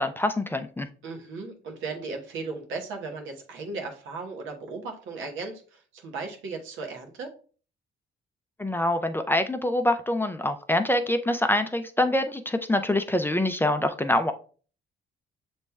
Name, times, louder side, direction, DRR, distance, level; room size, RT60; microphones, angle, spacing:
voice 1, 0.0-0.9 8.6-14.3, left 1 dB, 10° left, 8 dB, 0.4 m, -25 dB
voice 2, 1.0-7.3, right 4 dB, 85° right, 3 dB, 1.0 m, -36 dB
6.8 x 3.1 x 2.2 m, 0.40 s
cardioid pair, 90°, 20 cm